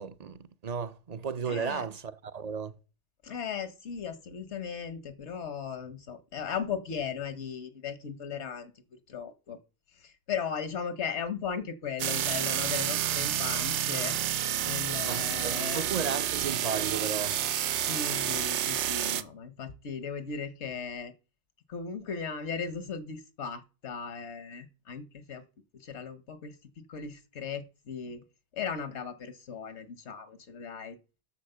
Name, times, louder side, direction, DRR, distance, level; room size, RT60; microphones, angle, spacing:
voice 1, 0.0-2.8 15.0-17.4, right 6 dB, 45° right, 0.6 m, -34 dB
voice 2, 1.5-1.9 3.2-8.7 9.1-9.6 9.9-14.1 14.6-15.8 17.8-21.1 21.7-25.4 25.7-28.2 28.5-31.0, left 6 dB, 80° left, 1.3 m, -37 dB
sound 1, 12.0-19.2, right 11 dB, 85° right, 0.9 m, -29 dB
8.0 x 6.3 x 6.6 m
omnidirectional pair, 1.1 m